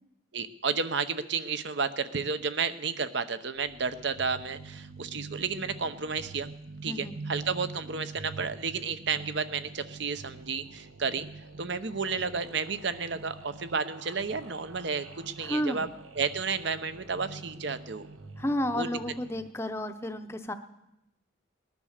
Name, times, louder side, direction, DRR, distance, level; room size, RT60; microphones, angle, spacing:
voice 1, 0.3-6.5 6.8-11.3 11.6-15.9 16.2-18.1 18.7-18.9, right 5 dB, 60° right, 12 dB, 0.8 m, -32 dB
sound 1, 3.6-19.5, right 3 dB, 80° right, 1.1 m, -46 dB
voice 2, 6.8-7.2 15.4-15.9 18.4-20.5, equal, 10° left, 8 dB, 0.7 m, -32 dB
20.0 x 10.5 x 6.6 m, 0.90 s
head